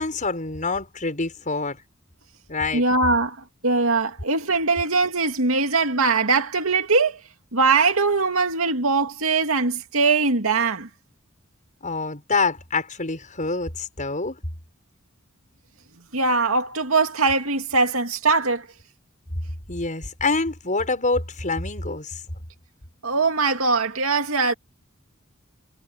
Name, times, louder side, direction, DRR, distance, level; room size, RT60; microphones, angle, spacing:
voice 1, 0.0-1.8 2.5-2.8 11.8-14.4 19.7-22.2, left 3 dB, 40° left, 6.2 m, -26 dB
voice 2, 2.7-3.4 3.6-7.2 7.5-10.9 16.1-18.7 23.0-24.5, right 4 dB, 80° right, 2.4 m, -21 dB
head